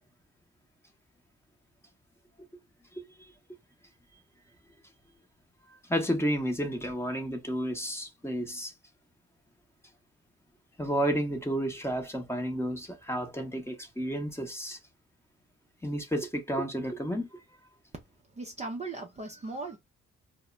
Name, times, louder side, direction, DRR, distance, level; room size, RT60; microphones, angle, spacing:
voice 1, 5.9-8.7 10.8-14.8 15.8-17.4, equal, 10° left, 0.8 m, -31 dB
voice 2, 18.4-19.8, right 3 dB, 20° right, 0.6 m, -37 dB
2.1 x 2.1 x 3.5 m
cardioid pair, 90°, 30 cm